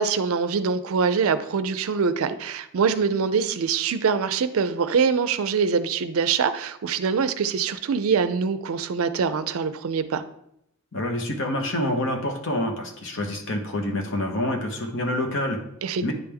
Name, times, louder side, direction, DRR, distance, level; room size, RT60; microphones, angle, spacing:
voice 1, 0.0-10.2 15.8-16.0, right 5 dB, 70° right, 12 dB, 0.4 m, -24 dB
voice 2, 10.9-15.6 16.0-16.1, left 1 dB, 60° left, 4 dB, 0.9 m, -27 dB
9.7 x 3.4 x 3.5 m, 0.76 s
head